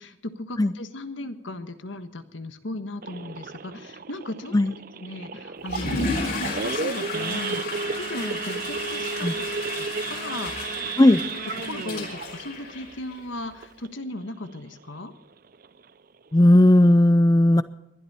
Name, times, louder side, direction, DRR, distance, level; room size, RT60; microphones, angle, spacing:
voice 1, 0.0-9.4 9.8-10.9 11.2-11.3 11.7-15.1, left 1 dB, 90° left, 9 dB, 1.5 m, -37 dB
Idling / Accelerating revving vroom / Sawing, 3.0-14.1 14.5-14.7 15.0-15.1 15.5-15.8 16.3-16.4 16.6-16.9, right 5 dB, 50° right, 0.5 m, -33 dB
Water / Toilet flush, 5.6-13.4, left 3 dB, 50° left, 5.1 m, -33 dB
voice 2, 16.3-17.6, left 1 dB, 20° left, 14 dB, 0.4 m, -16 dB
21.0 x 12.0 x 4.3 m, 0.88 s
head